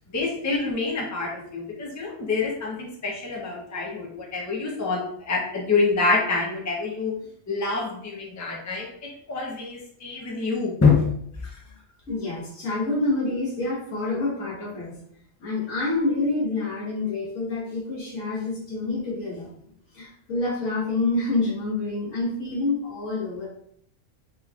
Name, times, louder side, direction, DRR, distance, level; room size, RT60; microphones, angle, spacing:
voice 1, 0.1-7.1 7.5-8.9 9.3-11.0, left 4 dB, 20° left, -2 dB, 0.6 m, -26 dB
voice 2, 12.1-14.9 15.4-19.5 19.9-23.5, left 2 dB, 85° left, -5 dB, 1.6 m, -27 dB
3.6 x 3.0 x 2.4 m, 0.68 s
omnidirectional pair, 1.3 m